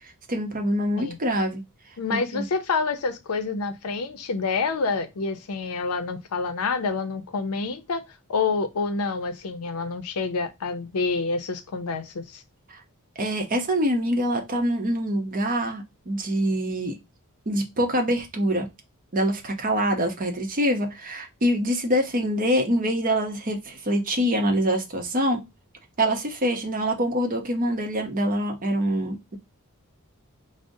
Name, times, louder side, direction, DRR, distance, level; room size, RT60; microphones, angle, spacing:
voice 1, 0.3-1.6 2.1-2.4 12.7-12.8 13.2-17.0 17.5-18.7 19.1-25.4 26.0-29.4, equal, 40° right, 0.7 m, -25 dB
voice 2, 2.0-8.0 8.3-12.4, left 4 dB, 75° left, 0.5 m, -27 dB
4.9 x 2.0 x 2.6 m
head